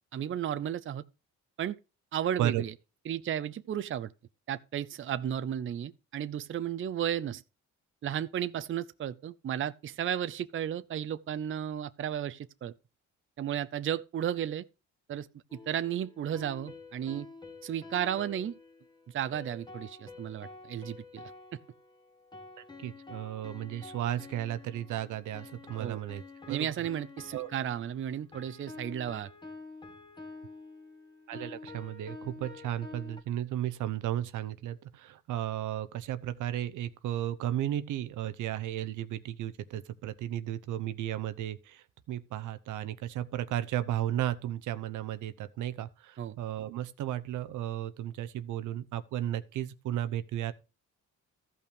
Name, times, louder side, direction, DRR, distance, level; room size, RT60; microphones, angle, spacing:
voice 1, 0.1-1.0 1.6-1.8 2.1-2.7 3.1-4.1 4.5-7.4 8.0-12.7 13.4-14.7 15.1-17.3 17.6-18.5 19.1-21.2 25.7-26.0 26.5-29.3 46.2-46.4, right 10 dB, 40° right, 0.6 m, -34 dB
sound 1, 15.5-33.2, left 3 dB, 15° left, 1.7 m, -49 dB
voice 2, 22.8-26.2 26.5-26.7 27.3-27.5 31.3-50.5, right 12 dB, 80° right, 0.8 m, -34 dB
14.0 x 5.6 x 5.1 m
cardioid pair, 90°, 30 cm